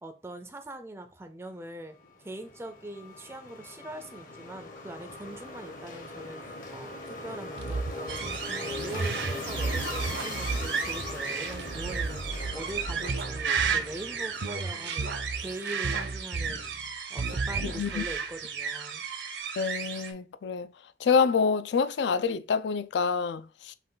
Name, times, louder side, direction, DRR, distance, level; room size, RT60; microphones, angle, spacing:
voice 1, 0.0-15.1 15.4-16.7 17.1-19.0, right 1 dB, 15° right, 0.4 m, -42 dB
sound 1, 2.0-16.4, left 2 dB, 50° left, 0.9 m, -41 dB
sound 2, 7.6-14.1 14.4-16.9 17.2-18.2, right 3 dB, 70° right, 0.5 m, -35 dB
sound 3, 8.1-20.1, right 6 dB, 85° right, 0.9 m, -34 dB
voice 2, 17.7-18.0 19.6-20.7 21.0-23.7, left 5 dB, 75° left, 0.4 m, -27 dB
5.4 x 2.3 x 3.8 m
head